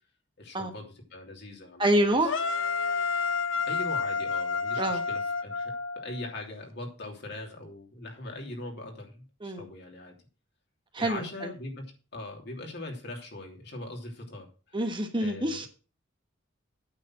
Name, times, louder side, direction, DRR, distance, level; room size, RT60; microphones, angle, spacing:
voice 1, 0.4-2.3 3.7-10.1 11.0-11.8 12.1-14.8 15.2-15.6, left 2 dB, 60° left, 1 dB, 3.1 m, -41 dB
voice 2, 1.8-2.4 4.8-5.0 9.4-9.7 10.9-11.5 14.7-15.7, right 1 dB, 25° right, 5 dB, 1.3 m, -27 dB
sound 1, 2.2-6.3, left 5 dB, 85° left, 0.9 m, -30 dB
9.0 x 7.0 x 5.9 m, 0.34 s
head